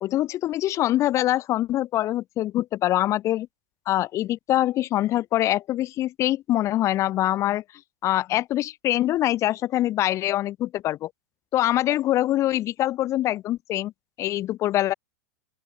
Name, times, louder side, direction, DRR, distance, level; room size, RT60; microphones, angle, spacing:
voice 1, 0.0-3.5 3.9-7.6 8.0-11.1 11.5-13.9 14.2-14.9, left 14 dB, 35° left, 2.5 m, -24 dB
open air
figure-of-eight pair, 90°, 8 cm